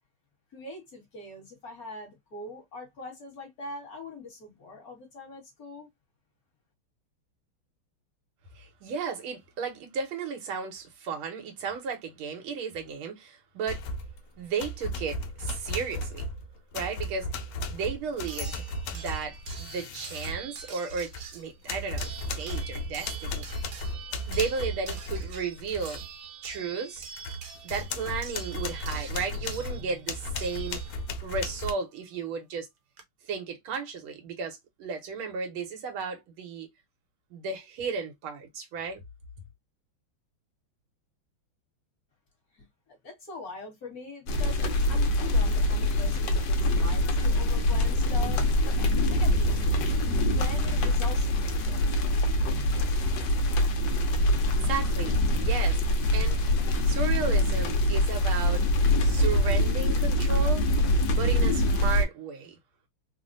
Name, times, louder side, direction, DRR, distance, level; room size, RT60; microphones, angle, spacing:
voice 1, 0.5-5.9 42.5-49.6 50.3-52.1, left 2 dB, 50° left, 1.6 m, -43 dB
voice 2, 8.5-13.8 14.4-16.3 16.7-18.7 18.9-23.7 24.3-26.0 26.4-27.1 27.6-30.8 31.2-32.7 33.3-36.7 37.3-39.0 54.6-56.4 56.8-58.6 59.0-60.6 61.1-62.6, right 5 dB, 80° right, 1.8 m, -34 dB
sound 1, 13.7-14.2 14.6-21.3 21.7-26.0 26.4-26.6 27.0-31.7, left 2 dB, 85° left, 1.5 m, -35 dB
sound 2, 16.8-16.9 18.3-31.3 32.5-32.6 33.0-33.1, right 7 dB, 65° right, 1.2 m, -45 dB
sound 3, 44.3-62.1, left 1 dB, 70° left, 1.3 m, -24 dB
3.8 x 2.1 x 2.5 m
omnidirectional pair, 2.3 m